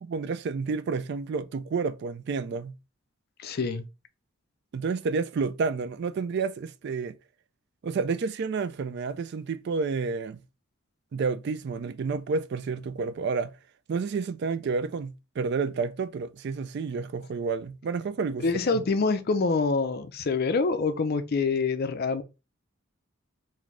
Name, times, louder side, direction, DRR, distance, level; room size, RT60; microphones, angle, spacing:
voice 1, 0.0-2.7 4.7-7.2 7.8-10.4 11.1-13.5 13.9-18.5 18.7-18.8, right 4 dB, 50° right, 0.3 m, -30 dB
voice 2, 3.4-3.9 18.4-22.2, left 4 dB, 45° left, 0.4 m, -26 dB
3.2 x 2.6 x 3.7 m
head